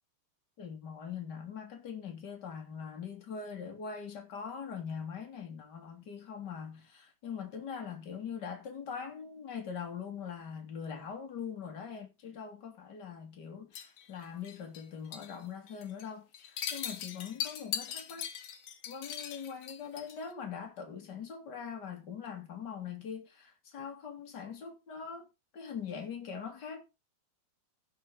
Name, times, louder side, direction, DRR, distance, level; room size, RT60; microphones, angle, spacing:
voice 1, 0.6-18.3 18.9-25.3 25.5-26.8, left 7 dB, 30° left, 2.1 m, -42 dB
sound 1, 13.7-14.8 15.1-15.4 15.7-16.0 16.3-20.3, left 9 dB, 60° left, 2.3 m, -40 dB
16.0 x 7.0 x 3.8 m
omnidirectional pair, 5.2 m